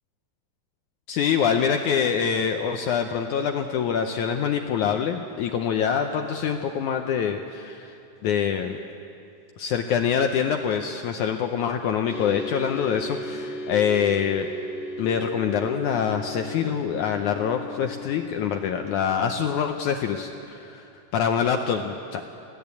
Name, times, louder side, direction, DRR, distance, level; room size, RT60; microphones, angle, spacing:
voice 1, 1.1-8.0 8.2-8.8 9.6-14.5 15.0-22.2, left 7 dB, 75° left, 5 dB, 1.9 m, -25 dB
sound 1, 12.1-20.3, left 2 dB, 50° left, 2.6 m, -37 dB
23.0 x 16.5 x 8.4 m, 2.6 s
omnidirectional pair, 4.2 m